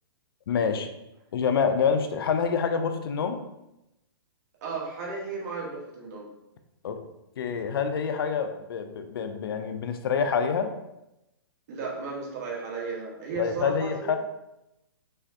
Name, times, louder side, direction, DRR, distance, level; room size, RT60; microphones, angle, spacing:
voice 1, 0.5-0.9 1.3-3.4 6.8-7.0 7.4-10.7 13.4-14.2, left 6 dB, 70° left, 8 dB, 0.6 m, -27 dB
voice 2, 4.6-6.3 11.7-14.1, right 4 dB, 45° right, -2 dB, 1.4 m, -34 dB
5.5 x 3.4 x 2.8 m, 0.89 s
hypercardioid pair, 145°, 13 cm